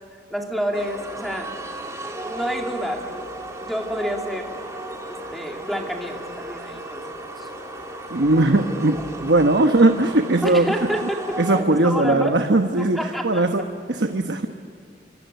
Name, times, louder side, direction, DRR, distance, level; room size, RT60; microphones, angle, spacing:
voice 1, 0.3-1.5 2.2-3.2 3.7-4.5 5.1-7.5 10.4-12.3 12.8-13.4, equal, ahead, 1 dB, 2.5 m, -29 dB
sound 1, 0.7-11.6, right 1 dB, 15° right, 2.6 m, -35 dB
voice 2, 8.1-10.7 11.4-14.5, right 2 dB, 65° right, 6 dB, 1.1 m, -19 dB
27.0 x 25.0 x 8.2 m, 2.4 s
head